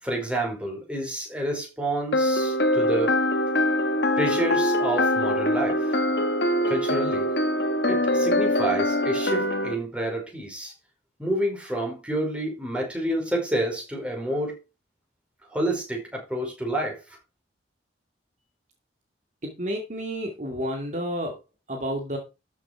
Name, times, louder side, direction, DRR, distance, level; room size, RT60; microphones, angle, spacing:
voice 1, 0.0-3.2 4.2-6.0 6.7-7.3 7.9-10.7 11.2-14.6 15.5-17.2, right 1 dB, 5° right, 4.7 m, -29 dB
sound 1, 2.1-9.7, left 1 dB, 65° left, 1.5 m, -23 dB
voice 2, 19.4-21.4 21.7-22.2, equal, 40° right, 2.4 m, -30 dB
13.0 x 6.5 x 4.7 m
head